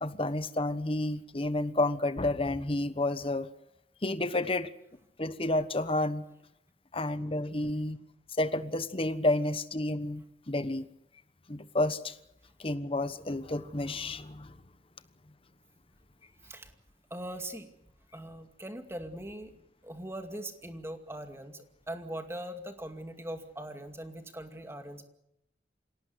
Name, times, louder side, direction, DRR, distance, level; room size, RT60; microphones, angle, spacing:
voice 1, 0.0-3.5 4.0-4.7 5.2-6.2 6.9-8.0 8.4-10.9 11.5-12.2 12.6-14.5, left 2 dB, 30° left, 13 dB, 1.2 m, -30 dB
voice 2, 16.4-16.7 17.1-17.7 18.1-19.5 19.8-25.0, right 1 dB, 15° right, 6 dB, 2.3 m, -41 dB
26.5 x 18.0 x 8.1 m, 0.79 s
head